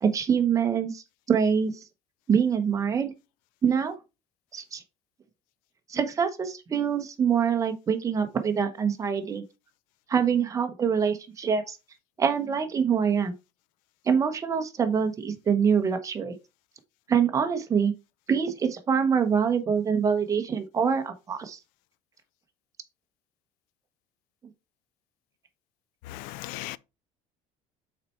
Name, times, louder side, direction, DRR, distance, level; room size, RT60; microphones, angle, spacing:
voice 1, 0.0-1.7 2.3-3.1 3.6-4.0 4.5-4.8 5.9-9.4 10.1-11.8 12.2-13.3 14.1-16.4 17.1-17.9 18.3-21.6, right 7 dB, 25° right, 0.9 m, -25 dB
voice 2, 26.1-26.8, left 17 dB, 90° left, 0.4 m, -37 dB
5.9 x 4.3 x 4.4 m
cardioid pair, 155°, 14 cm